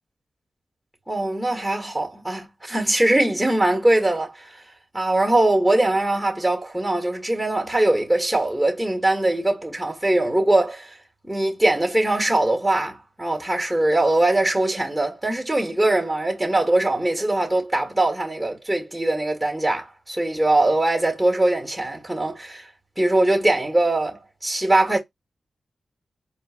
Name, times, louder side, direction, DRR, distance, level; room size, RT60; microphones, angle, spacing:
voice 1, 1.1-4.6 4.9-11.0 11.2-22.7 23.0-25.0, right 2 dB, 5° right, 1.4 m, -21 dB
4.4 x 2.2 x 2.5 m
wide cardioid pair, 100°, 0 cm